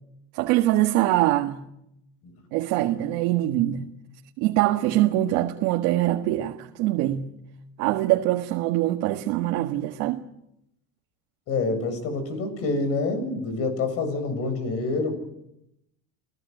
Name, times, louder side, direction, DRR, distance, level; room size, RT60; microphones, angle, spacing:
voice 1, 0.3-1.6 2.5-3.9 4.4-7.3 7.8-10.2, right 15 dB, 70° right, 1.8 m, -23 dB
voice 2, 11.5-15.2, left 3 dB, 50° left, 7.5 m, -27 dB
30.0 x 17.5 x 8.1 m
cardioid pair, 140°, 30 cm